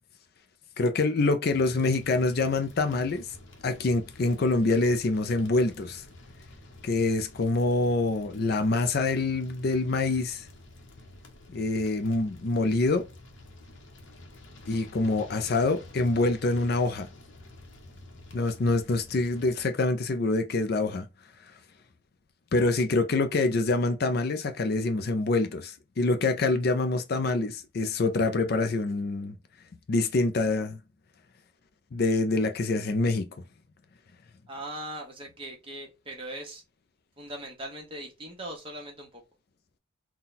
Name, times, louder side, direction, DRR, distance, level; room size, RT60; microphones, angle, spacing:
voice 1, 0.8-3.3 3.6-6.0 6.8-10.5 11.5-13.1 14.7-17.1 18.3-21.1 22.5-29.4 29.9-30.8 31.9-33.4, left 3 dB, 50° left, 0.4 m, -26 dB
sound 1, 1.5-19.7, left 1 dB, 65° left, 0.9 m, -49 dB
voice 2, 34.5-36.6 37.2-39.2, right 1 dB, 25° right, 1.1 m, -40 dB
3.9 x 2.3 x 4.0 m
head